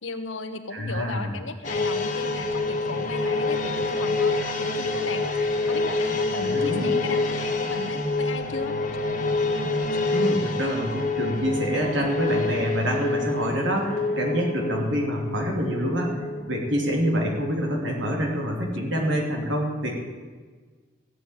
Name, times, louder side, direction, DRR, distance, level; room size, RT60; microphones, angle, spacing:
voice 1, 0.0-4.7 4.9-8.8, left 3 dB, 80° left, 8 dB, 1.3 m, -36 dB
voice 2, 0.7-1.3 6.4-6.9 10.1-16.2 16.5-20.0, equal, 75° right, 0 dB, 3.1 m, -26 dB
sound 1, 1.6-18.4 18.7-18.8, left 3 dB, 40° left, 1.8 m, -27 dB
15.0 x 7.8 x 9.0 m, 1.4 s
head